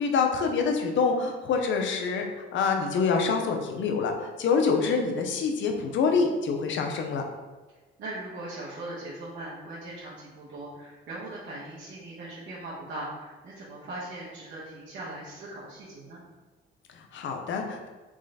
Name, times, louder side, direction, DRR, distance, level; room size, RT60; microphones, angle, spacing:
voice 1, 0.0-2.2 2.5-7.2 16.9-17.9, left 5 dB, 70° left, 3 dB, 0.7 m, -26 dB
voice 2, 8.0-16.2, right 2 dB, 70° right, -8 dB, 1.1 m, -39 dB
3.7 x 3.2 x 4.0 m, 1.3 s
cardioid pair, 90°, 20 cm